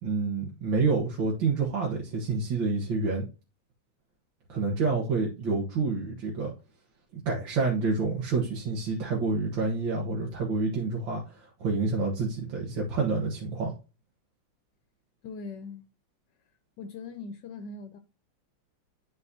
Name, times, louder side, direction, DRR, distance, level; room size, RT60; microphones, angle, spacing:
voice 1, 0.0-3.3 4.5-6.5 7.3-13.7, right 4 dB, 80° right, 2.1 m, -28 dB
voice 2, 15.2-15.9 16.8-18.0, left 4 dB, 70° left, 1.3 m, -40 dB
10.5 x 4.2 x 2.7 m
omnidirectional pair, 2.1 m